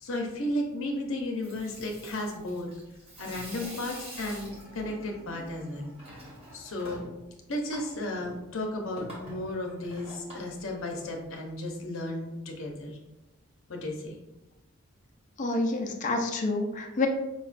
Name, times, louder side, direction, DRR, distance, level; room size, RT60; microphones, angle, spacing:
voice 1, 0.0-2.7 3.2-5.9 6.5-7.1 7.5-13.0 13.7-14.1, left 1 dB, 70° left, 1 dB, 0.7 m, -34 dB
Water tap faucet / Sink (filling or washing), 1.2-11.4, right 1 dB, 30° right, 1.1 m, -46 dB
voice 2, 15.4-17.1, left 2 dB, 35° left, 1 dB, 0.5 m, -28 dB
5.1 x 2.4 x 2.4 m, 0.96 s
head